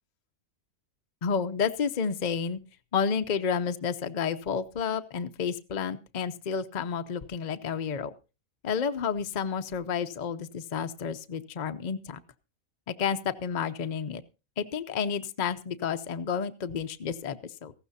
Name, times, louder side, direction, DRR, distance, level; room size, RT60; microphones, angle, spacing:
voice 1, 1.2-2.6 2.9-8.1 8.6-12.2 12.9-14.2 14.6-17.7, left 6 dB, 40° left, 9 dB, 0.7 m, -30 dB
18.5 x 14.5 x 2.7 m, 0.29 s
omnidirectional pair, 1.5 m